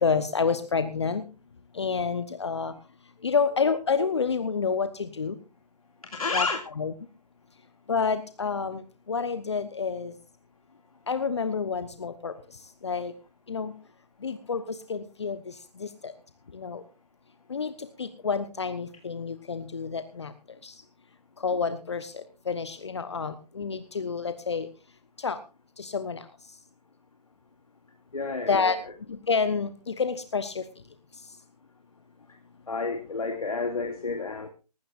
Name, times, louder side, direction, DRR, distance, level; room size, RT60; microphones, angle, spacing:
voice 1, 0.0-1.2 1.7-2.7 3.2-5.4 6.3-6.5 6.8-6.9 7.9-8.8 9.1-10.1 11.1-12.3 12.8-13.1 13.5-13.7 14.2-15.5 15.8-16.1 16.5-16.8 17.5-17.7 18.0-20.3 20.6-20.7 21.4-24.7 25.2-25.4 25.8-26.2 28.5-28.8 29.1-30.6, left 5 dB, 45° left, 12 dB, 1.1 m, -28 dB
voice 2, 6.0-6.6 28.1-28.7 32.7-34.5, left 4 dB, 60° left, 4 dB, 2.4 m, -30 dB
19.0 x 16.0 x 2.5 m, 0.31 s
figure-of-eight pair, 155°, 21 cm